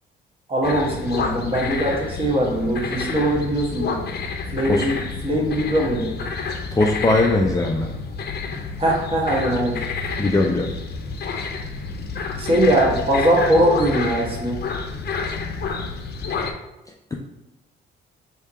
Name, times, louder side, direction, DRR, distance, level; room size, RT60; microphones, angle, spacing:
voice 1, 0.5-4.0 4.5-5.0 5.2-6.1 8.8-9.8 12.4-14.6, right 1 dB, 30° right, -2 dB, 1.3 m, -21 dB
sound 1, 0.6-16.5, left 4 dB, 55° left, 0.7 m, -29 dB
voice 2, 6.7-7.9 10.2-10.7, left 2 dB, 15° left, 1 dB, 0.4 m, -19 dB
3.4 x 2.8 x 4.7 m, 0.96 s
cardioid pair, 90°, 20 cm